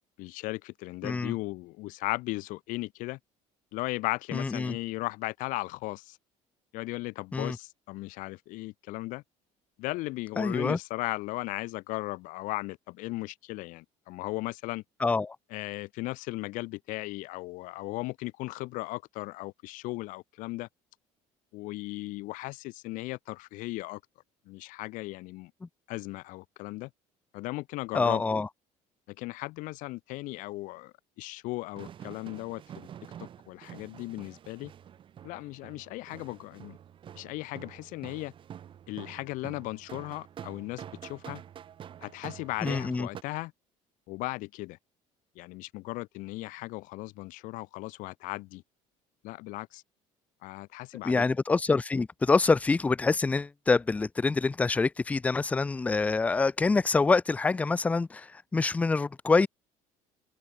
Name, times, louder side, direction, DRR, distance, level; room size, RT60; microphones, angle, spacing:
voice 1, 0.2-3.2 3.7-6.2 6.7-9.2 9.8-14.8 15.5-20.7 21.5-24.0 24.5-25.5 25.9-26.9 27.3-28.2 29.1-32.9 33.2-34.7 35.2-36.8 37.2-38.3 38.9-41.4 42.0-43.5 44.1-44.8 45.4-48.6 49.2-49.8 50.4-51.3, left 21 dB, 70° left, 2.1 m, -37 dB
voice 2, 4.3-4.8 7.3-7.6 10.4-10.8 15.0-15.4 27.9-28.5 42.6-43.1 51.0-59.5, left 4 dB, 10° left, 0.4 m, -26 dB
sound 1, 31.7-43.2, right 9 dB, 40° right, 2.8 m, -47 dB
cardioid pair, 145°, 14 cm